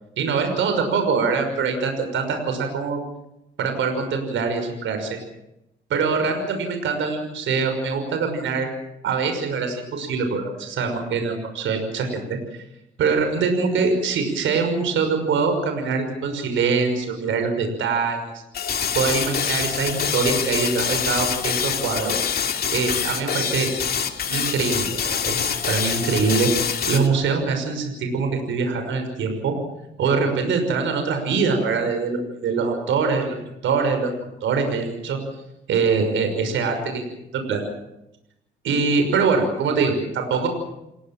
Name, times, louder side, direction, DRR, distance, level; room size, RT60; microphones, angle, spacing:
voice 1, 0.2-3.0 3.6-5.2 5.9-8.7 9.0-12.1 12.5-12.6 13.0-18.2 18.9-22.1 22.7-23.7 24.3-26.5 26.9-29.5 30.0-33.4 33.6-34.1 34.4-35.2 35.7-37.0 37.3-37.6 38.6-40.5, right 5 dB, 75° right, 6 dB, 6.1 m, -23 dB
sound 1, 18.5-27.1, left 7 dB, 50° left, 2.9 m, -25 dB
29.5 x 18.0 x 7.5 m, 0.86 s
cardioid pair, 90°, 20 cm